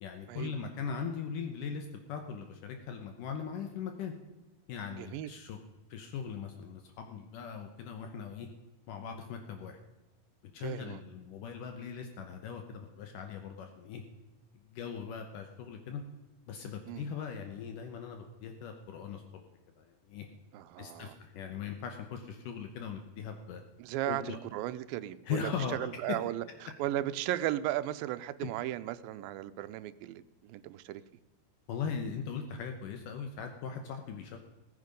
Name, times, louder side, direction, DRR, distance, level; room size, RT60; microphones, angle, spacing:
voice 1, 0.0-4.1 4.7-5.6 5.9-8.5 8.9-9.8 10.5-14.0 14.7-16.0 16.5-19.2 19.8-20.3 20.8-23.6 24.1-24.4 25.2-25.8 31.7-34.4, left 6 dB, 70° left, 5 dB, 2.4 m, -39 dB
voice 2, 4.9-5.3 10.6-11.0 16.9-17.1 20.5-21.2 23.8-26.4 26.8-31.0, right 14 dB, 80° right, 11 dB, 2.3 m, -36 dB
18.0 x 9.4 x 5.2 m, 1.1 s
omnidirectional pair, 4.1 m